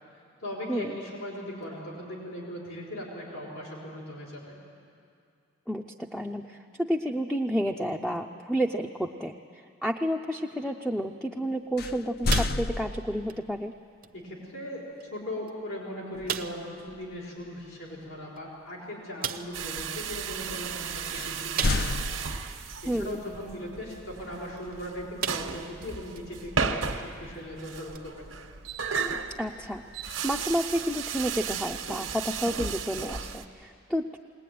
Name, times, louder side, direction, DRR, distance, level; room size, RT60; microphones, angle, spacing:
voice 1, 0.4-4.6 14.1-14.8 15.1-22.0 22.6-28.4, left 1 dB, 85° left, -3 dB, 4.5 m, -39 dB
voice 2, 5.7-13.7 22.9-23.2 29.4-29.8 30.2-34.2, equal, 5° left, 3 dB, 0.5 m, -30 dB
sound 1, 11.8-13.4 16.2-16.5 16.9-17.1 21.1-22.8, left 2 dB, 50° left, 0.5 m, -30 dB
sound 2, 12.3-13.0 13.3-13.5 14.0-14.1 15.0-15.1 15.5-15.6 16.3-16.7 18.4-18.5 19.2-19.6 21.6-22.1 22.6-22.7 24.6-24.7 25.2-25.7 26.2-26.3 27.9-28.0, right 8 dB, 45° right, 0.7 m, -34 dB
sound 3, 19.5-33.5, right 6 dB, 85° right, 1.3 m, -35 dB
21.0 x 20.0 x 9.3 m, 2.4 s
head